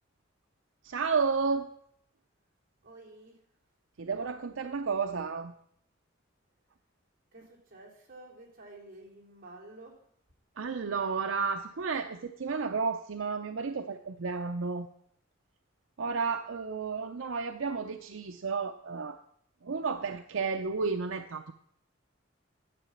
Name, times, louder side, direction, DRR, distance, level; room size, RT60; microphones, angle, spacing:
voice 1, 0.8-1.7 4.0-5.5 10.6-14.9 16.0-19.2 19.6-21.5, right 5 dB, 75° right, 0.6 m, -32 dB
voice 2, 2.8-3.4 7.3-10.1, right 2 dB, 45° right, 3.1 m, -51 dB
10.0 x 7.5 x 7.1 m
head